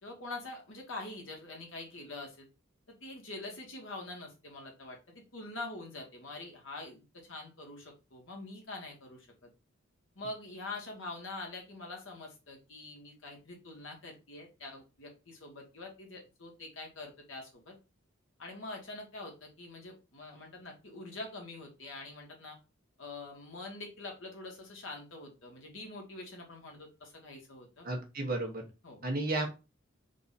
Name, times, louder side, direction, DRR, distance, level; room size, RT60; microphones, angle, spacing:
voice 1, 0.0-2.5 2.9-9.5 10.1-17.8 18.4-22.6 23.0-27.9 28.8-29.0, left 2 dB, 70° left, 1 dB, 1.6 m, -45 dB
voice 2, 27.8-28.7 29.0-29.5, right 2 dB, 45° right, 2 dB, 1.2 m, -33 dB
4.0 x 2.7 x 4.0 m, 0.28 s
head